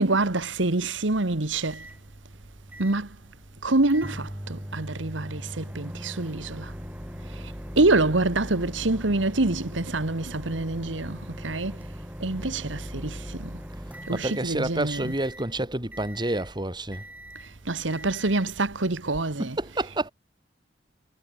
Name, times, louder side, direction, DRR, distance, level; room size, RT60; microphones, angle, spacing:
voice 1, 0.0-1.8 2.8-3.1 3.6-6.7 7.8-11.8 12.2-13.6 14.1-15.1 17.6-19.6, right 2 dB, 80° right, 1.6 m, -26 dB
Microwave oven, 1.1-19.1, equal, 10° right, 3.2 m, -40 dB
voice 2, 14.1-17.0 19.4-20.1, right 1 dB, 25° right, 4.2 m, -29 dB
head